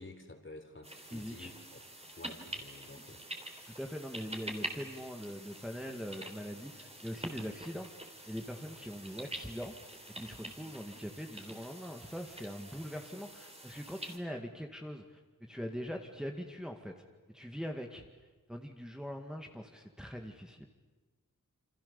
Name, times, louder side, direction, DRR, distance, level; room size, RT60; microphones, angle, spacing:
voice 1, 0.0-1.8 2.2-3.2, left 2 dB, 35° left, 6 dB, 3.6 m, -51 dB
sound 1, 0.8-14.2, right 1 dB, 20° right, 3.6 m, -46 dB
voice 2, 1.1-1.5 3.7-7.9 8.3-9.7 10.2-15.2 15.5-16.9 17.3-18.1 18.5-20.6, equal, ahead, 2 dB, 2.0 m, -42 dB
28.5 x 25.5 x 7.0 m, 1.2 s
wide cardioid pair, 70°, 34 cm